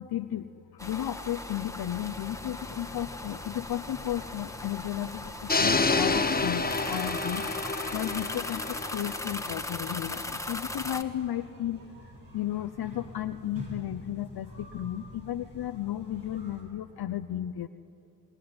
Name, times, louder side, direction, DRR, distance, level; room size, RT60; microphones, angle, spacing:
voice 1, 0.0-17.7, left 12 dB, 70° left, 7 dB, 0.8 m, -34 dB
sound 1, 0.8-11.0, left 2 dB, 10° left, 1.7 m, -38 dB
sound 2, 1.9-16.6, equal, 55° right, 7.1 m, -48 dB
sound 3, 5.5-9.5, left 3 dB, 25° left, 1.2 m, -28 dB
26.5 x 20.5 x 9.7 m, 2.7 s
cardioid pair, 60°, 39 cm